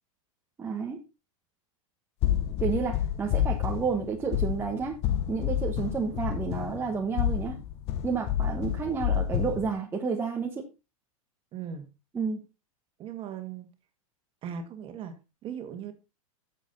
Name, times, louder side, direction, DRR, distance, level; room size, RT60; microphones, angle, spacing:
voice 1, 0.6-1.0 2.6-5.0 5.3-7.6 8.0-10.7 12.1-12.4, right 5 dB, 10° right, 1.2 m, -30 dB
sound 1, 2.2-9.7, left 11 dB, 35° left, 0.9 m, -29 dB
voice 2, 11.5-11.9 13.0-13.7 14.4-15.1 15.4-15.9, right 8 dB, 30° right, 2.1 m, -38 dB
10.5 x 7.5 x 4.0 m
supercardioid pair, 140°, 18 cm